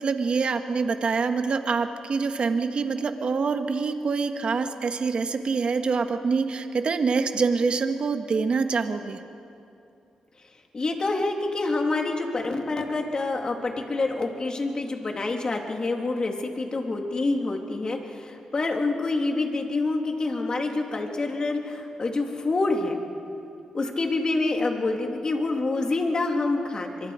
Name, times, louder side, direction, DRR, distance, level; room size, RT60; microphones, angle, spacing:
voice 1, 0.0-9.2, right 4 dB, 55° right, 7 dB, 1.4 m, -25 dB
voice 2, 10.7-23.0 23.7-27.1, left 3 dB, 40° left, 2 dB, 2.9 m, -27 dB
25.0 x 23.5 x 5.0 m, 2.6 s
cardioid pair, 65°, 2 cm